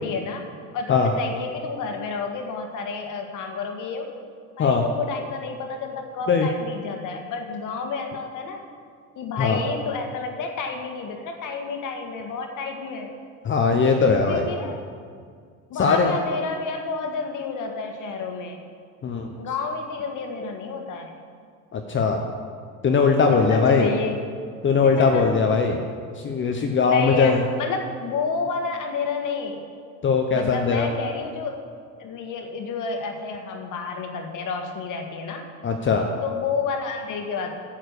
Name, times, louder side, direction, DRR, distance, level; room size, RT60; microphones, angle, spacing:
voice 1, 0.0-0.4 0.7-4.1 4.6-8.6 9.1-13.1 14.3-14.8 15.7-18.6 19.4-21.1 23.3-24.2 24.8-25.3 26.8-29.7 30.3-31.6 32.0-35.5 36.2-37.5, left 4 dB, 45° left, 4 dB, 1.7 m, -30 dB
voice 2, 13.4-14.5 15.8-16.1 19.0-19.3 21.7-22.2 22.8-23.9 24.6-25.8 26.2-27.4 30.0-30.9 35.6-36.1, left 5 dB, 25° left, 3 dB, 0.9 m, -20 dB
9.4 x 7.4 x 6.8 m, 2.1 s
hypercardioid pair, 90°, 43 cm